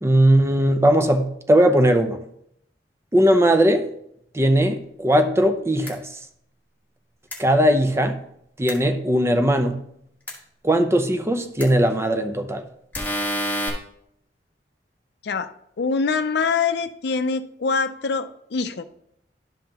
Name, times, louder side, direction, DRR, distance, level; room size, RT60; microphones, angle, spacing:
voice 1, 0.0-2.2 3.1-3.9 4.3-6.0 7.4-8.2 8.6-9.8 10.6-12.6, equal, 15° right, 7 dB, 0.6 m, -19 dB
sound 1, 5.9-6.0 7.3-7.4 8.7-8.8 10.3-10.4 11.6-11.7 12.9-13.7, equal, 10° left, 1.6 m, -27 dB
voice 2, 15.8-18.8, left 5 dB, 65° left, 10 dB, 0.5 m, -24 dB
12.0 x 5.7 x 2.9 m, 0.73 s
head